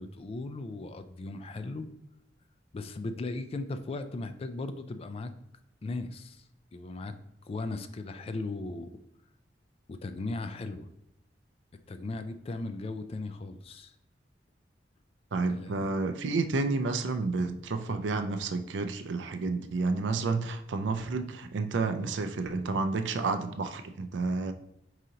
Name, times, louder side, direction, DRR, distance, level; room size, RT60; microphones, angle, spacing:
voice 1, 0.0-1.9 2.7-5.3 5.8-6.5 6.7-7.2 7.4-9.0 9.9-10.9 11.9-13.9 15.4-15.9, left 2 dB, 35° left, 9 dB, 0.3 m, -37 dB
voice 2, 15.3-24.5, right 3 dB, 75° right, 8 dB, 0.4 m, -30 dB
4.8 x 2.8 x 3.8 m, 0.83 s
head